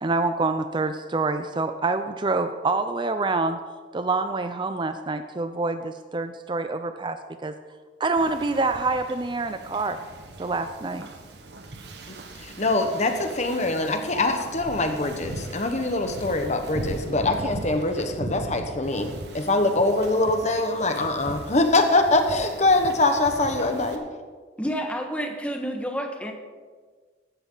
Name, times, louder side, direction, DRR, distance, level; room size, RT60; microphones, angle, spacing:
voice 1, 0.0-3.6 3.9-7.5 8.0-10.0 10.4-11.1, right 3 dB, 25° right, 9 dB, 0.5 m, -26 dB
Wind / Ocean, 8.2-24.0, right 1 dB, 65° right, 1.4 m, -39 dB
voice 2, 12.4-24.0, left 2 dB, 40° left, 6 dB, 1.2 m, -23 dB
voice 3, 24.6-26.3, equal, 5° left, 3 dB, 1.5 m, -29 dB
15.5 x 12.5 x 4.0 m, 1.5 s
head